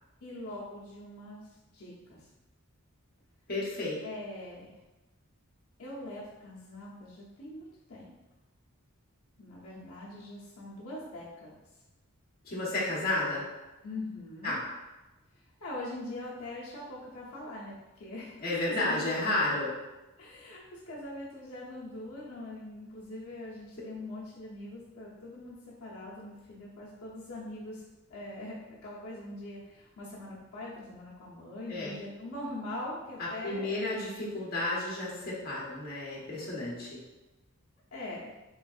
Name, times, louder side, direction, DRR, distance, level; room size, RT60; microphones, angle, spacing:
voice 1, 0.2-2.3 4.0-4.8 5.8-8.1 9.4-11.5 13.8-14.5 15.3-17.7 18.0-19.0 20.2-27.8 28.1-33.8 37.9-38.3, left 1 dB, 75° left, -6 dB, 0.7 m, -42 dB
voice 2, 3.5-4.0 12.4-13.4 14.4-14.6 18.4-19.7 31.7-32.0 33.2-37.0, left 2 dB, 45° left, -6 dB, 0.9 m, -32 dB
3.5 x 3.1 x 2.3 m, 1.1 s
head